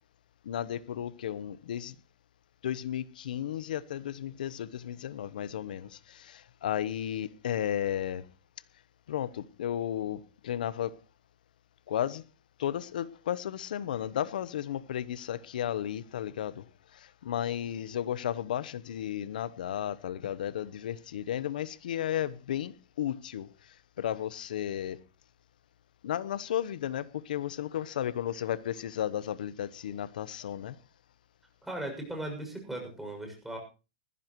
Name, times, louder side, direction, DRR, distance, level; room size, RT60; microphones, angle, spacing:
voice 1, 0.4-2.0 2.6-8.3 9.1-11.0 11.9-12.3 12.6-25.0 26.0-30.8, left 10 dB, 80° left, 1.0 m, -34 dB
voice 2, 31.6-33.6, right 1 dB, 5° right, 6.7 m, -38 dB
20.0 x 15.5 x 3.1 m
hypercardioid pair, 135°, 5 cm